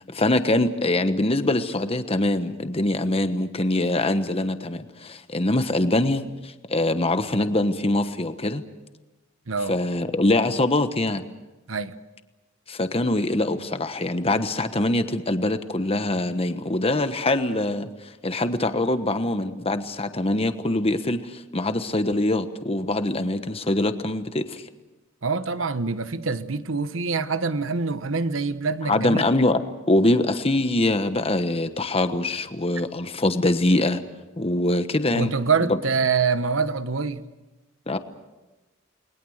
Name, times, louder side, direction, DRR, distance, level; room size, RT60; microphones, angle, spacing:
voice 1, 0.1-8.6 9.7-11.2 12.7-17.9 18.2-24.6 28.9-34.0 34.4-35.3 35.7-35.8 37.9-38.0, left 2 dB, 30° left, 9 dB, 1.2 m, -23 dB
voice 2, 9.5-9.8 11.7-11.9 25.2-29.3 35.1-37.2, right 4 dB, 75° right, 12 dB, 1.2 m, -25 dB
29.5 x 21.0 x 6.5 m, 1.1 s
head